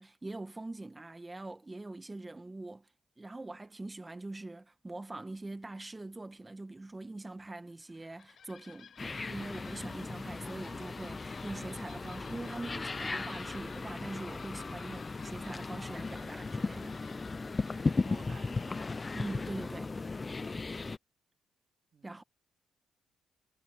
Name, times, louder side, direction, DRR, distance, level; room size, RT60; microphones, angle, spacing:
voice 1, 0.0-2.9 3.2-17.0 19.1-20.0 22.0-22.2, right 2 dB, 15° right, 1.5 m, -43 dB
sound 1, 7.7-20.2, left 8 dB, 60° left, 5.8 m, -58 dB
sound 2, 9.0-21.0, left 3 dB, 25° left, 0.3 m, -37 dB
voice 2, 11.9-12.4 17.6-18.8 21.9-22.2, right 6 dB, 50° right, 2.2 m, -55 dB
cardioid pair, 90°, 0 cm